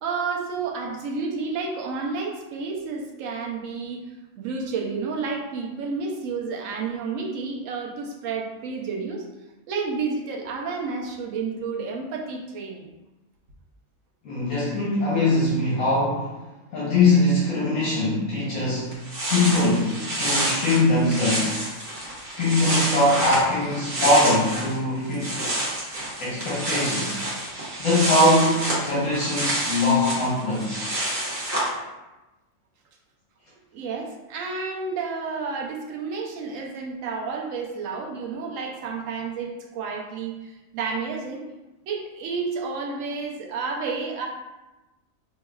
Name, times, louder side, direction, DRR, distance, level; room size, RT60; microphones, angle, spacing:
voice 1, 0.0-4.0 4.4-9.2 9.7-12.9 33.7-41.4 41.9-44.3, right 4 dB, 75° right, 1 dB, 1.0 m, -30 dB
voice 2, 14.2-16.3 16.7-19.0 19.3-21.6 22.4-25.4 26.2-27.2 27.8-30.8, left 2 dB, 70° left, -7 dB, 1.3 m, -22 dB
sound 1, 18.6-18.7 18.9-24.8 25.0-31.7, right 1 dB, 50° right, 1.4 m, -28 dB
4.5 x 3.0 x 2.3 m, 1.0 s
omnidirectional pair, 1.5 m